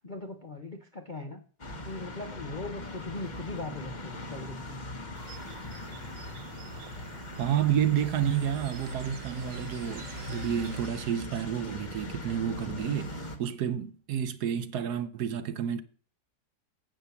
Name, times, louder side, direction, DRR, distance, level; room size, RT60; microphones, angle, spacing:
voice 1, 0.0-1.4 1.8-4.8, left 2 dB, 45° left, 0.6 m, -40 dB
sound 1, 1.6-13.4, left 2 dB, 30° left, 1.0 m, -41 dB
sound 2, 5.1-10.9, right 8 dB, 85° right, 1.4 m, -49 dB
voice 2, 7.4-15.8, right 9 dB, 70° right, 1.2 m, -30 dB
sound 3, 7.6-13.0, left 1 dB, 45° right, 1.6 m, -45 dB
8.3 x 5.8 x 7.0 m
omnidirectional pair, 1.9 m